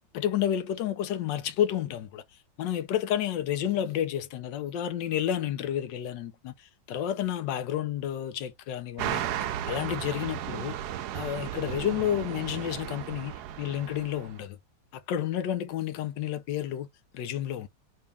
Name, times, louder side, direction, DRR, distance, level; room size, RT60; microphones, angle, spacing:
voice 1, 0.1-2.2 2.6-10.8 11.1-14.6 14.9-16.9 17.1-17.7, left 10 dB, 80° left, 1.3 m, -30 dB
sound 1, 9.0-14.4, right 11 dB, 70° right, 1.0 m, -35 dB
4.0 x 2.3 x 3.3 m
omnidirectional pair, 2.0 m